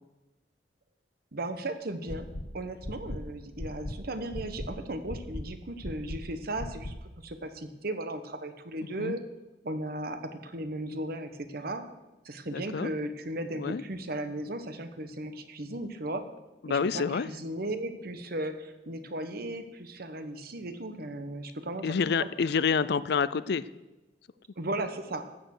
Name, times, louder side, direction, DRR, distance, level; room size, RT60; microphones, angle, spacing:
voice 1, 1.3-2.3 2.5-6.9 7.2-9.2 9.6-11.8 12.2-16.2 16.7-21.9 24.6-25.3, right 1 dB, 60° right, 8 dB, 1.2 m, -36 dB
sound 1, 2.1-2.4 2.8-3.2 3.6-3.9 4.3-4.7 5.1-5.4 5.8-6.2 6.6-6.9, left 1 dB, 45° left, 1.1 m, -36 dB
voice 2, 12.5-12.9 13.6-13.8 16.6-17.3 21.8-23.6, left 5 dB, 65° left, 17 dB, 0.5 m, -28 dB
14.0 x 8.6 x 6.6 m, 1.1 s
head